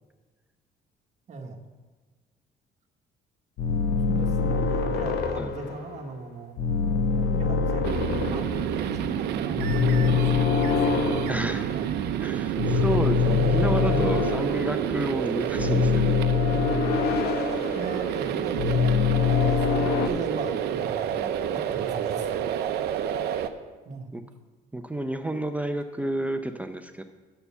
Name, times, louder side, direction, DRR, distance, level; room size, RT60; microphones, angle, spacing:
voice 1, 1.3-1.6 4.1-6.6 7.1-8.5 8.8-11.8 13.1-14.2 16.5-16.9 17.7-21.1 21.5-22.4 23.8-24.1, right 3 dB, 45° right, 1 dB, 1.2 m, -37 dB
sound 1, 3.6-6.1 6.6-9.1 9.6-12.0 12.6-14.9 15.6-18.3 18.6-20.1, left 6 dB, 75° left, 0.8 m, -25 dB
sound 2, 7.8-23.5, right 9 dB, 75° right, 0.6 m, -29 dB
voice 2, 11.3-11.7 12.2-16.1 21.2-21.6 24.1-24.2 24.7-27.0, right 1 dB, 10° right, 7 dB, 0.5 m, -30 dB
6.9 x 6.8 x 7.0 m, 1.3 s
cardioid pair, 110°, 17 cm